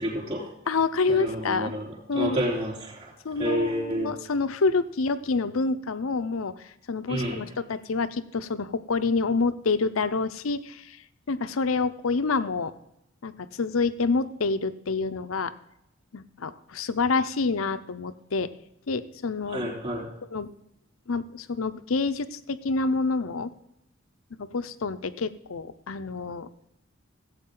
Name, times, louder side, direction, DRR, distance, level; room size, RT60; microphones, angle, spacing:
voice 1, 0.0-0.5 1.1-1.9 2.1-4.1 7.1-7.4 19.5-20.1, equal, 30° right, -2 dB, 3.5 m, -29 dB
voice 2, 0.7-1.7 2.1-2.4 3.2-6.5 6.9-11.0 11.3-12.7 13.2-13.3 13.6-15.5 16.1-18.5 18.9-19.7 20.3-20.5 21.1-23.5 24.4-26.5, left 4 dB, 85° left, 12 dB, 0.7 m, -27 dB
16.5 x 8.2 x 3.8 m, 0.81 s
head